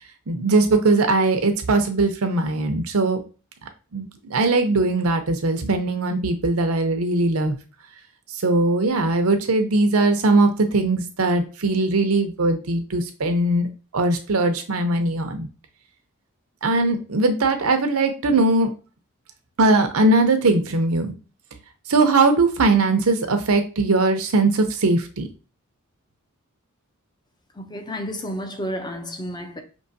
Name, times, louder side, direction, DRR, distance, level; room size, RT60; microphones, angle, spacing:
voice 1, 0.3-3.2 3.9-7.6 8.4-13.7 13.9-15.5 16.6-18.7 19.6-21.1 21.9-25.3, right 2 dB, 80° right, 0.8 m, -20 dB
voice 2, 27.6-29.6, equal, 20° left, 0.7 m, -31 dB
5.5 x 2.9 x 2.7 m
head